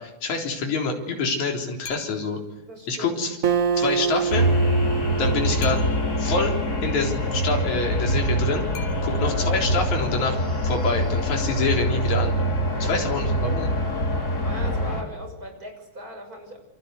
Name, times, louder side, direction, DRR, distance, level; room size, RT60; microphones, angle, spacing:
voice 1, 0.0-2.4 2.9-3.4 3.8-4.5 5.2-5.8 6.2-8.7 9.0-10.4 10.6-12.3 12.8-13.7, left 3 dB, 65° left, 1 dB, 5.1 m, -26 dB
sound 1, 1.8-2.5 5.6-6.3 8.7-9.5, left 7 dB, 80° left, 4.7 m, -41 dB
voice 2, 2.7-3.2 9.1-9.5 12.7-13.0 14.4-16.6, equal, 25° right, 5 dB, 6.4 m, -39 dB
Acoustic guitar, 3.4-7.0, right 7 dB, 55° right, 0.9 m, -27 dB
sound 2, 4.3-15.0, equal, 30° left, 4.7 m, -24 dB
28.0 x 25.5 x 8.2 m, 0.94 s
omnidirectional pair, 3.6 m